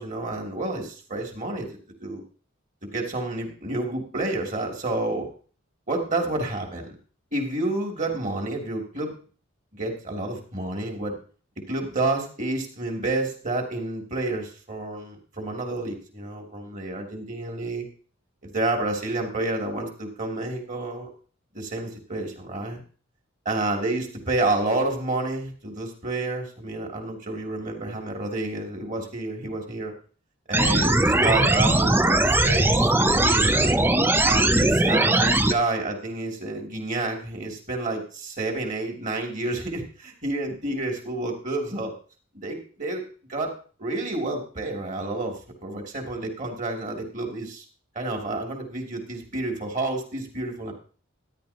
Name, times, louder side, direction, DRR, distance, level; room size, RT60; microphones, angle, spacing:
voice 1, 0.0-1.7 2.0-2.2 2.8-5.3 5.9-6.9 7.3-9.1 9.7-11.2 11.7-17.8 18.4-21.1 21.5-22.8 23.4-29.9 30.5-33.8 34.2-41.9 42.3-43.0 43.3-43.5 43.8-47.6 47.9-50.7, right 2 dB, 35° right, 2 dB, 2.9 m, -29 dB
sound 1, 30.5-35.5, right 2 dB, 10° right, 0.5 m, -20 dB
13.5 x 11.0 x 2.9 m, 0.39 s
head